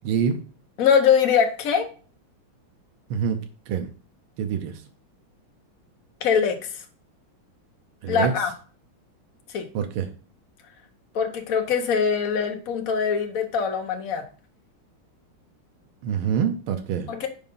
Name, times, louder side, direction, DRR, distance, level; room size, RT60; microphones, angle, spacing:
voice 1, 0.0-0.4 3.1-3.4 3.7-3.9 4.4-4.8 8.0-8.3 9.8-10.1 16.0-17.1, right 7 dB, 85° right, 6 dB, 1.6 m, -25 dB
voice 2, 0.8-1.9 6.2-6.8 8.1-8.5 9.5-9.7 11.1-14.2 17.1-17.3, left 7 dB, 50° left, 4 dB, 1.3 m, -22 dB
5.5 x 4.8 x 5.4 m, 0.40 s
omnidirectional pair, 2.3 m